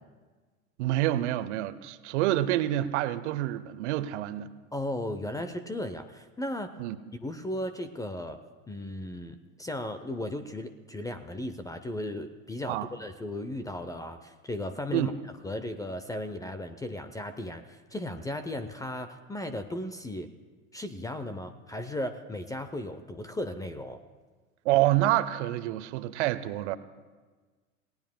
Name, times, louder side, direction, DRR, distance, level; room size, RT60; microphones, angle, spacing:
voice 1, 0.8-4.5 6.8-7.0 12.7-12.9 14.9-15.1 24.6-26.8, right 14 dB, 50° right, 13 dB, 0.9 m, -27 dB
voice 2, 4.7-6.7 7.2-8.4 8.7-20.3 20.7-24.0, left 1 dB, 10° left, 10 dB, 0.6 m, -36 dB
28.5 x 17.5 x 2.2 m, 1.4 s
figure-of-eight pair, 90°, 43 cm